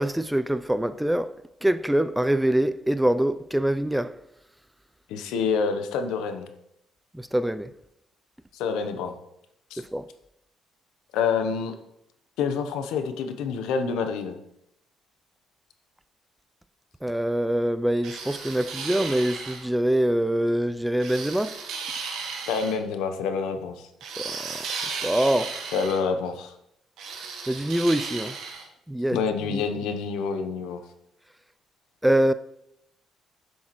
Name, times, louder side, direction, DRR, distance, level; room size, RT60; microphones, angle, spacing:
voice 1, 0.0-1.3 1.6-4.2 7.1-7.7 9.9-10.1 17.0-21.6 24.2-24.6 25.0-25.6 27.5-28.4 28.9-29.2 29.5-29.6 32.0-32.3, right 1 dB, 5° right, 0.3 m, -24 dB
voice 2, 5.1-6.5 8.5-9.1 9.7-9.8 11.1-11.7 12.4-14.4 22.5-23.9 25.7-26.5 29.1-30.8, left 5 dB, 90° left, 0.8 m, -27 dB
sound 1, 18.0-19.7 21.0-22.8 24.0-26.0 27.0-28.6, right 5 dB, 80° right, 1.4 m, -35 dB
7.4 x 6.4 x 3.0 m
cardioid pair, 90°, 0 cm